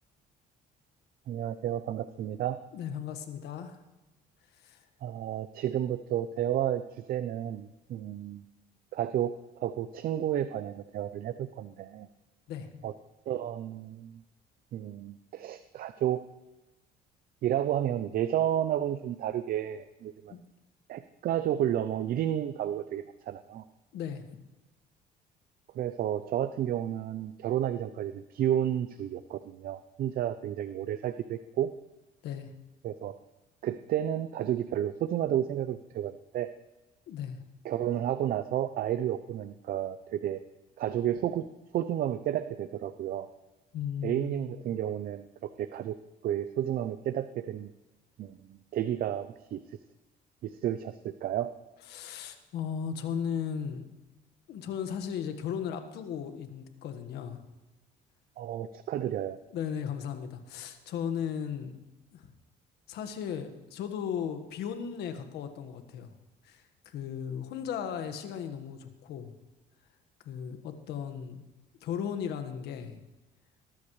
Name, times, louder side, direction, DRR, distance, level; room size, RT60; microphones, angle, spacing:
voice 1, 1.3-2.6 5.0-8.4 8.9-12.1 12.8-12.9 13.3-14.2 14.7-16.2 17.4-20.3 20.9-23.6 25.7-31.7 32.8-33.2 33.6-36.5 37.6-40.4 40.8-41.5 41.7-43.3 44.0-45.3 45.6-45.9 46.2-47.7 48.2-49.6 50.4-51.5 58.4-59.4, right 11 dB, 60° right, 11 dB, 0.6 m, -31 dB
voice 2, 2.7-3.8 4.5-4.9 12.5-12.9 20.3-20.4 23.9-24.2 32.2-32.5 37.1-37.4 43.7-44.6 51.9-53.8 54.5-57.4 59.5-61.7 62.1-62.3 62.9-66.1 66.4-69.3 70.2-71.4 71.8-73.0, left 8 dB, 80° left, 7 dB, 1.6 m, -36 dB
20.5 x 13.5 x 3.3 m, 1.1 s
cardioid pair, 110°, 17 cm